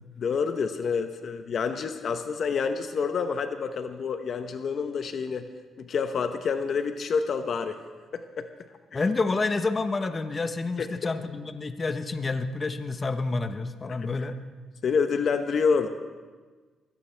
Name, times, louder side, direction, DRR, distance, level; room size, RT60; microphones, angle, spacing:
voice 1, 0.2-5.5 5.8-7.8 8.1-8.5 8.9-9.0 10.8-10.9 13.9-14.3 14.8-15.9, left 5 dB, 55° left, 8 dB, 0.8 m, -28 dB
voice 2, 8.9-14.4, left 3 dB, 30° left, 9 dB, 1.0 m, -29 dB
22.0 x 16.5 x 3.4 m, 1.4 s
cardioid pair, 90°, 0 cm